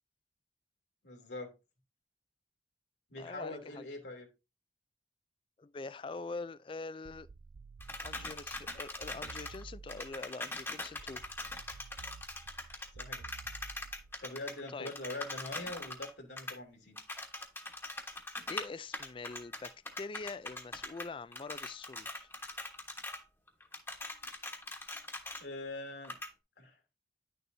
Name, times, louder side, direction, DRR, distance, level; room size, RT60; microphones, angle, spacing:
voice 1, 1.0-1.5 3.1-4.3 12.9-13.2 14.2-17.0 25.4-26.2 26.6-26.8, left 2 dB, 85° left, 2.7 m, -43 dB
voice 2, 3.2-3.8 5.6-7.3 8.0-11.2 14.7-14.9 18.5-22.3, left 3 dB, 30° left, 0.3 m, -44 dB
sound 1, 7.1-10.3 11.0-14.3, right 4 dB, 55° right, 0.4 m, -52 dB
sound 2, 7.8-9.6 9.9-16.1 16.4-16.6 17.0-18.7 18.9-21.1 21.3-23.2 23.5-25.4 26.0-26.3, left 2 dB, 15° left, 1.2 m, -42 dB
10.5 x 6.7 x 2.7 m
head